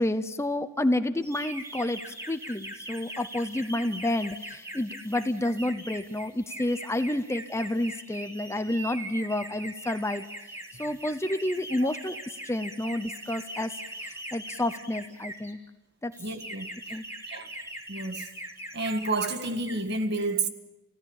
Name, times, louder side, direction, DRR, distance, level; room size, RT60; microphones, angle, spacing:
voice 1, 0.0-10.2 10.8-12.2 12.4-13.7 14.3-15.6 16.0-16.1 16.9-17.0, left 1 dB, 15° left, 0.7 m, -29 dB
sound 1, 1.2-15.5 16.1-19.3 19.6-19.9, right 1 dB, 15° right, 3.3 m, -41 dB
voice 2, 16.2-16.7 17.3-17.5 17.9-18.3 18.7-20.5, right 2 dB, 55° right, 1.7 m, -30 dB
28.5 x 16.5 x 7.2 m
head